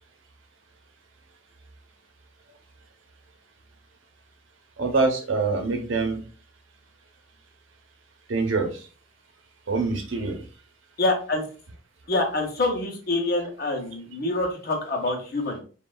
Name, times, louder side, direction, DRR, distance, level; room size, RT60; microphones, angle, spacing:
voice 1, 4.8-6.2 8.3-8.7 9.7-10.4, right 3 dB, 80° right, 3 dB, 0.8 m, -24 dB
voice 2, 11.0-11.4 12.1-15.6, left 2 dB, 50° left, 2 dB, 0.7 m, -26 dB
3.1 x 2.3 x 2.2 m, 0.38 s
head